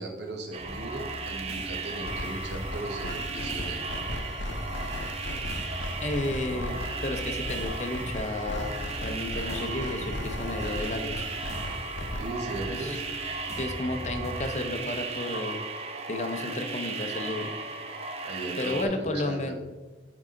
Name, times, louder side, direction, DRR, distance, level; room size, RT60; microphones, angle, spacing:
voice 1, 0.0-3.8 12.2-13.0 18.2-19.5, right 2 dB, 75° right, 2 dB, 1.3 m, -37 dB
sound 1, 0.5-18.8, right 4 dB, 35° right, 0.6 m, -36 dB
sound 2, 0.6-14.6, equal, 15° left, 1.6 m, -41 dB
sound 3, 2.0-12.3, left 1 dB, 80° left, 0.6 m, -38 dB
voice 2, 6.0-11.3 12.7-13.0 13.6-15.6 16.1-17.5 18.6-19.5, left 2 dB, 40° left, 6 dB, 0.6 m, -32 dB
9.4 x 3.7 x 3.8 m, 1.2 s
head